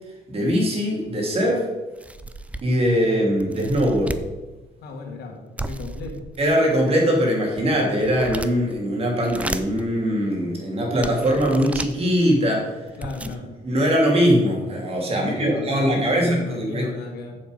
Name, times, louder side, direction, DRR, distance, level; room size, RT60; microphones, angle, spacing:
voice 1, 0.3-1.7 2.6-4.2 6.4-12.7 13.6-16.9, equal, 35° right, -1 dB, 2.8 m, -21 dB
sound 1, 1.1-1.2 1.6-1.7 2.0-2.9 3.4-4.3 5.6-6.7 7.2-8.8 9.2-9.8 10.4-10.5 11.0-11.9 12.6-12.7 12.9-13.4, right 2 dB, 10° right, 0.5 m, -34 dB
voice 2, 4.8-6.2 13.0-13.4 15.1-17.4, left 3 dB, 70° left, 2 dB, 2.0 m, -34 dB
7.4 x 7.4 x 5.2 m, 1.1 s
cardioid pair, 110°, 17 cm